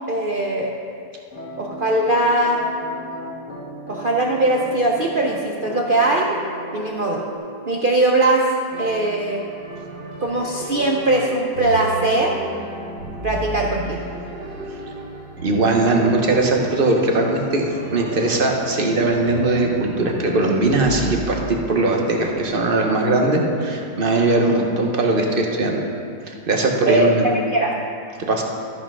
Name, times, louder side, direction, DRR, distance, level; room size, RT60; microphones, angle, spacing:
voice 1, 0.1-0.7 1.6-2.6 3.9-6.4 6.7-7.2 7.7-8.5 8.8-9.4 10.2-12.3 13.2-14.0 26.9-27.1 27.5-27.7, right 2 dB, 55° right, -1 dB, 0.5 m, -20 dB
sound 1, 1.3-7.4, equal, 50° left, 1.7 m, -35 dB
sound 2, 8.7-21.5, right 1 dB, 70° right, 2.1 m, -33 dB
voice 2, 15.4-17.6 17.9-25.8 26.3-27.3 28.2-28.4, right 2 dB, 35° right, 1 dB, 1.1 m, -20 dB
13.0 x 5.7 x 5.5 m, 2.4 s
omnidirectional pair, 1.8 m